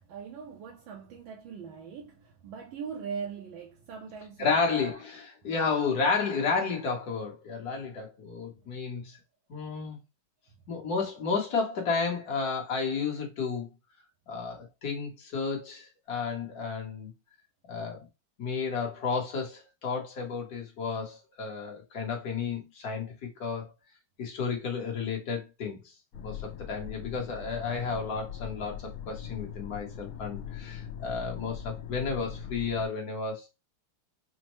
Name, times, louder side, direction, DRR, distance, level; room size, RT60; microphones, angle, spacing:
voice 1, 0.0-4.6 5.4-5.7, right 6 dB, 75° right, 1.3 m, -41 dB
voice 2, 4.4-9.2 9.5-10.0 10.7-13.7 14.3-17.1 17.7-18.1 18.4-23.7 24.2-25.8 26.2-33.5, left 5 dB, 50° left, 1.3 m, -32 dB
sound 1, 26.1-32.9, left 9 dB, 80° left, 1.4 m, -41 dB
5.3 x 2.1 x 3.0 m
omnidirectional pair, 2.4 m